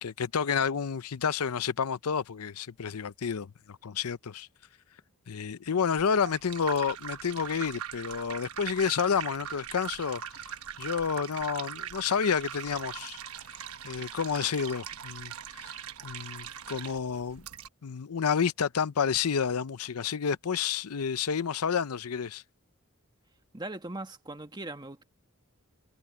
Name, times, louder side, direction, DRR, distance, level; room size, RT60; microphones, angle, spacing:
voice 1, 0.0-4.5 5.3-10.4 10.8-13.2 13.8-15.3 15.6-15.7 16.0-17.4 17.8-22.4, left 6 dB, 85° left, 0.6 m, -30 dB
sound 1, 6.0-17.7, right 9 dB, 80° right, 1.1 m, -41 dB
voice 2, 23.5-25.0, right 2 dB, 20° right, 1.7 m, -39 dB
head